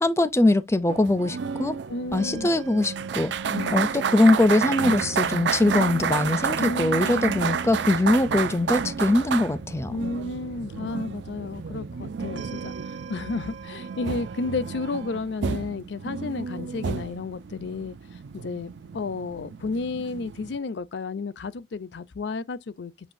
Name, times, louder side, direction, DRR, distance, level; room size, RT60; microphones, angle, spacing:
voice 1, 0.0-1.7 2.1-3.3 3.7-9.9, left 2 dB, 15° left, 0.4 m, -22 dB
sound 1, 0.9-20.6, right 6 dB, 70° right, 0.4 m, -31 dB
voice 2, 1.9-2.5 3.5-3.8 6.6-7.3 9.9-23.1, left 3 dB, 70° left, 0.5 m, -32 dB
sound 2, 2.2-15.2, right 5 dB, 85° right, 0.8 m, -42 dB
sound 3, 4.9-12.9, right 1 dB, 35° right, 0.7 m, -43 dB
7.2 x 2.8 x 2.5 m
head